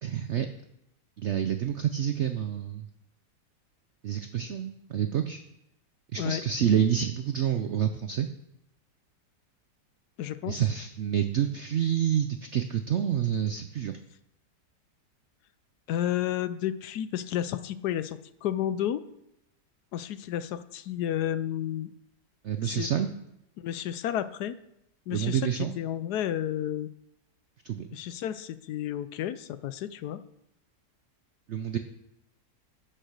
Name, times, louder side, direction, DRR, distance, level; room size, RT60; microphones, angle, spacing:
voice 1, 0.0-0.5 1.2-2.9 4.0-5.4 6.1-8.3 10.5-13.9 22.4-23.1 25.1-25.7 27.6-28.0 31.5-31.8, right 9 dB, 75° right, 8 dB, 0.6 m, -28 dB
voice 2, 10.2-10.6 15.9-19.0 19.9-21.9 22.6-22.9 23.6-24.6 25.1-26.9 27.9-30.2, left 11 dB, 75° left, 13 dB, 1.1 m, -31 dB
10.0 x 6.7 x 6.5 m, 0.83 s
omnidirectional pair, 1.9 m